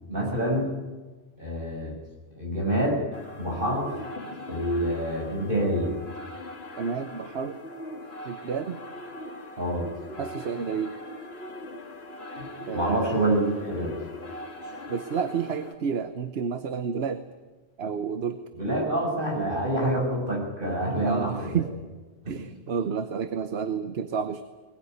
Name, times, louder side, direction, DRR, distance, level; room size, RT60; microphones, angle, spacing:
voice 1, 0.1-0.7 1.4-2.0 2.3-3.0 3.4-3.9 4.5-5.9 9.6-9.9 12.4-14.0 18.6-21.6 22.2-22.5, right 1 dB, 50° right, -1 dB, 7.2 m, -27 dB
sound 1, 3.1-15.8, left 1 dB, 60° left, 2.7 m, -41 dB
voice 2, 6.8-7.6 8.2-8.8 10.2-10.9 12.7-13.2 14.9-17.2 17.8-18.4 19.8-20.0 20.9-21.7 22.3-24.4, right 6 dB, 65° right, 10 dB, 1.2 m, -30 dB
20.5 x 20.5 x 9.5 m, 1.3 s
omnidirectional pair, 1.2 m